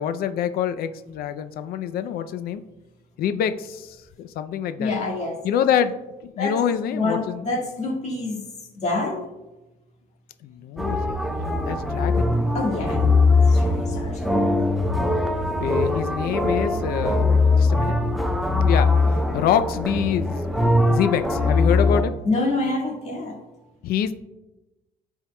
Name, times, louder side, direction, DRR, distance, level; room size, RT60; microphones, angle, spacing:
voice 1, 0.0-2.6 3.2-4.9 5.4-6.0 6.2-7.6 10.4-11.2 11.6-12.3 15.5-17.3 17.5-18.0 18.6-18.9 19.3-20.5 20.9-22.1 23.8-24.1, left 9 dB, 65° left, 10 dB, 0.4 m, -25 dB
voice 2, 4.8-5.4 6.4-6.5 6.9-8.5 8.8-9.2 12.5-14.4 22.3-23.4, left 2 dB, 40° left, -2 dB, 1.8 m, -27 dB
sound 1, 10.8-22.0, left 3 dB, ahead, 0.6 m, -21 dB
13.0 x 4.5 x 2.2 m, 1.0 s
cardioid pair, 110°, 17 cm